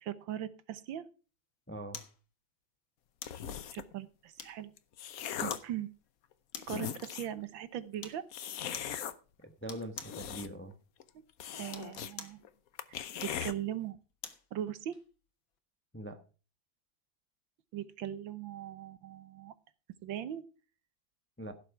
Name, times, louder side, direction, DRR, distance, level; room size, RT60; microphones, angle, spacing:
voice 1, 0.0-1.0 3.7-4.7 5.4-5.9 6.7-8.2 11.2-11.3 11.6-12.4 12.9-14.0 14.5-15.0 17.7-19.5 20.0-20.4, right 11 dB, 80° right, 14 dB, 1.7 m, -39 dB
voice 2, 1.7-2.0 9.4-10.7 15.9-16.2 21.4-21.5, right 1 dB, 10° left, 8 dB, 0.7 m, -42 dB
sound 1, 1.9-2.2 3.2-3.5 4.4-4.8 5.5-5.7 6.5-6.9 8.0-8.2 8.7-9.0 9.7-10.2 11.6-12.4 13.2-14.5 14.9-15.0, left 7 dB, 80° left, 2.2 m, -46 dB
sound 2, 3.3-3.9 4.6-5.7 6.3-6.4 6.6-7.4 8.3-9.1 9.8-10.7 11.0-11.1 11.4-12.1 12.4-12.5 12.8-13.5, left 9 dB, 55° left, 1.1 m, -39 dB
16.0 x 7.5 x 4.7 m, 0.35 s
omnidirectional pair, 2.1 m